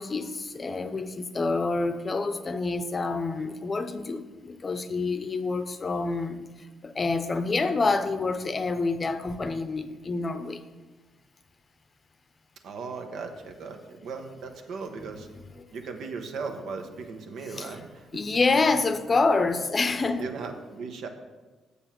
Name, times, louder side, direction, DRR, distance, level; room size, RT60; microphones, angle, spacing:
voice 1, 0.0-6.4 6.8-10.6 15.6-15.7 17.6-17.7 18.1-20.3, left 3 dB, 35° left, 0.6 m, -27 dB
voice 2, 12.6-15.3 15.7-18.2 18.8-18.9 20.2-21.1, right 4 dB, 75° right, 1.1 m, -37 dB
7.0 x 6.9 x 6.0 m
cardioid pair, 90°, 0 cm